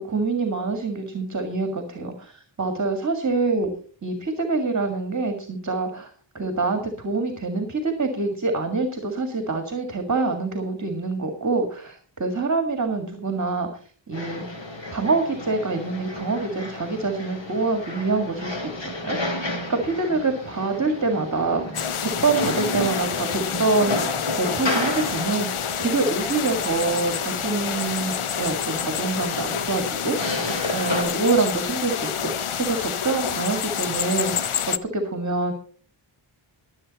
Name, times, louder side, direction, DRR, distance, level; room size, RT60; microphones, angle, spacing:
voice 1, 0.0-3.7 4.0-13.7 14.1-14.4 14.9-30.4 30.7-35.5, right 3 dB, 35° right, 5 dB, 1.9 m, -26 dB
sound 1, 14.1-31.0, left 2 dB, 60° left, 3.6 m, -32 dB
sound 2, 21.7-34.8, left 8 dB, 85° left, 0.9 m, -28 dB
22.0 x 7.9 x 4.1 m, 0.43 s
wide cardioid pair, 125°, 49 cm